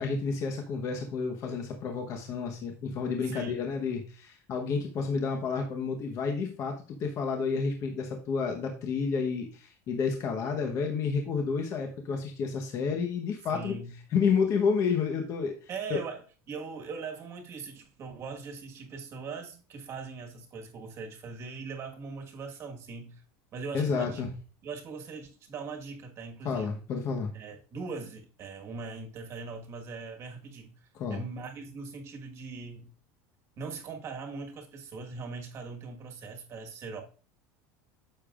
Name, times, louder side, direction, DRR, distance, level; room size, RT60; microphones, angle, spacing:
voice 1, 0.0-13.7 14.1-16.0 23.7-24.3 26.4-27.3 30.9-31.2, left 5 dB, 35° left, 3 dB, 1.1 m, -30 dB
voice 2, 3.3-3.6 13.5-13.9 15.7-16.2 16.5-23.2 23.5-24.2 24.6-26.8 27.3-32.9 33.6-37.0, right 4 dB, 35° right, 3 dB, 1.6 m, -40 dB
9.9 x 6.9 x 2.5 m, 0.38 s
cardioid pair, 160°, 9 cm